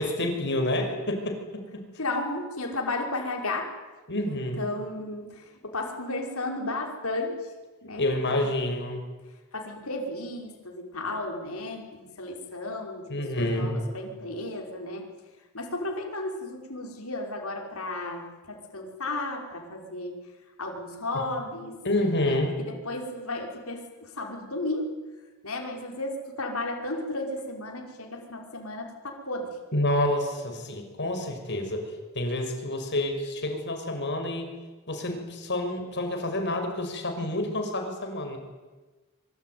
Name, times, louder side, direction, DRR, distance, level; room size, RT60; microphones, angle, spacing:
voice 1, 0.0-1.8 4.1-4.7 8.0-9.0 13.1-13.7 21.8-22.5 29.7-31.8 32.1-34.5 34.9-38.4, left 1 dB, 55° left, 5 dB, 6.1 m, -28 dB
voice 2, 2.0-3.7 4.3-7.5 7.8-8.0 8.3-8.5 9.5-15.1 15.5-20.2 20.6-21.8 22.1-24.9 25.4-29.6, left 2 dB, 70° left, 1 dB, 5.4 m, -34 dB
25.5 x 24.0 x 9.6 m, 1.3 s
head